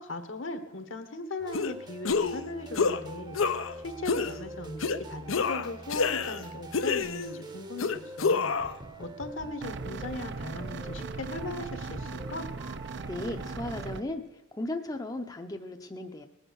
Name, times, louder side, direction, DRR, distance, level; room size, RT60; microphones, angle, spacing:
voice 1, 0.0-3.5 3.8-8.6 9.0-12.5, left 2 dB, 65° left, 9 dB, 1.3 m, -38 dB
sound 1, 1.4-14.0, right 2 dB, 20° right, 0.8 m, -44 dB
sound 2, 1.5-1.7 2.0-2.4 2.7-3.0 3.3-3.7 4.1-4.3 4.8-5.0 5.3-6.4 6.7-7.4 7.8-8.7, left 5 dB, 85° left, 0.7 m, -28 dB
sound 3, 9.6-14.0, right 4 dB, 60° right, 0.6 m, -39 dB
voice 2, 13.0-16.3, left 1 dB, 20° left, 5 dB, 0.6 m, -36 dB
19.5 x 7.8 x 6.3 m, 0.98 s
head